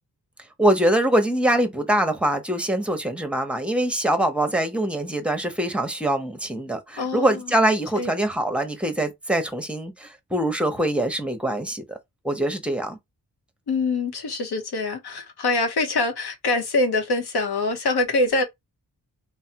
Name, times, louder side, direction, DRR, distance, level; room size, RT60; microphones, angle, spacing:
voice 1, 0.6-12.0 12.2-13.0, right 1 dB, 5° right, 0.8 m, -23 dB
voice 2, 7.0-7.4 8.0-8.1 13.7-18.4, left 2 dB, 70° left, 1.0 m, -24 dB
3.1 x 2.1 x 2.8 m
cardioid pair, 45°, 40 cm